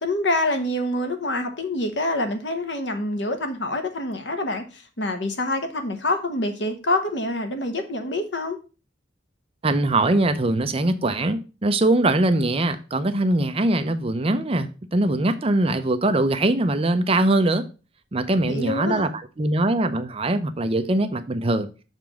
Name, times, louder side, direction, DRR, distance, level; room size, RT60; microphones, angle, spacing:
voice 1, 0.0-8.6 18.5-19.1, left 1 dB, 70° left, 1.2 m, -26 dB
voice 2, 9.6-17.6 18.1-19.1 19.4-21.7, right 2 dB, 30° right, 0.6 m, -22 dB
6.7 x 3.5 x 6.2 m
head